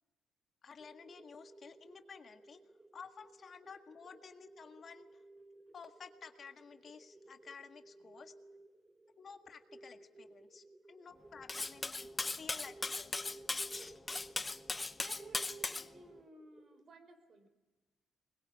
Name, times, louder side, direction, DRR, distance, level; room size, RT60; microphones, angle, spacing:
voice 1, 0.6-2.6 2.9-5.1 5.7-8.3 9.2-12.1 12.4-13.3, left 6 dB, 50° left, 6 dB, 1.7 m, -53 dB
sound 1, 0.8-16.8, right 2 dB, 15° right, 1.0 m, -58 dB
Cutlery silverware, 11.5-15.9, left 3 dB, 20° left, 0.7 m, -38 dB
voice 2, 15.0-17.5, right 3 dB, 50° right, 8 dB, 4.9 m, -55 dB
21.0 x 21.0 x 8.5 m, 1.2 s
cardioid pair, 90°, 0 cm